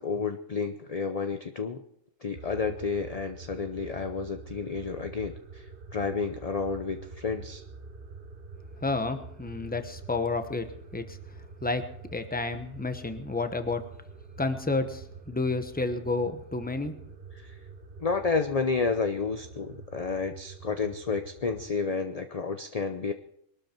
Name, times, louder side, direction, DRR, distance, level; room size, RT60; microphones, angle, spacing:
voice 1, 0.0-1.8 2.2-5.6 5.9-7.6 17.4-17.5 18.0-23.1, left 5 dB, 35° left, 8 dB, 0.7 m, -30 dB
sound 1, 2.3-21.7, right 4 dB, 50° right, 1.3 m, -46 dB
voice 2, 8.8-10.7 10.9-11.2 11.6-13.8 14.4-17.0, left 3 dB, 10° left, 8 dB, 1.0 m, -30 dB
22.5 x 12.5 x 4.5 m, 0.72 s
omnidirectional pair, 1.3 m